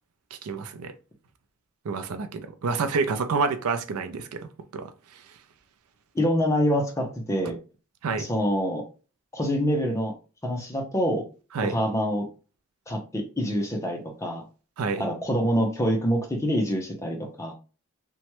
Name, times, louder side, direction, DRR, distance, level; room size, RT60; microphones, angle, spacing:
voice 1, 0.4-0.9 1.8-5.2 8.0-8.3 11.5-11.8 14.8-15.0, right 4 dB, 85° right, 0.4 m, -28 dB
voice 2, 6.1-7.6 8.2-8.8 9.3-10.1 10.4-11.2 11.6-12.3 12.9-14.4 15.0-17.5, equal, 15° left, 0.6 m, -26 dB
3.0 x 2.2 x 2.9 m
head